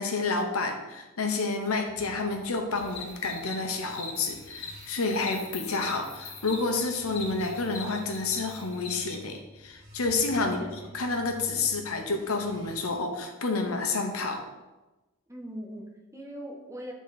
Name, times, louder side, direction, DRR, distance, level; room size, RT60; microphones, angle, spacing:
voice 1, 0.0-10.7 10.9-14.4, left 3 dB, 85° left, 4 dB, 1.0 m, -29 dB
sound 1, 1.9-12.9, left 1 dB, 65° right, 1.4 m, -50 dB
sound 2, 2.8-9.2, left 4 dB, 60° left, 1.1 m, -42 dB
voice 2, 10.4-11.0 15.3-16.9, equal, 15° right, 0 dB, 1.0 m, -41 dB
8.4 x 4.1 x 4.1 m, 1.1 s
head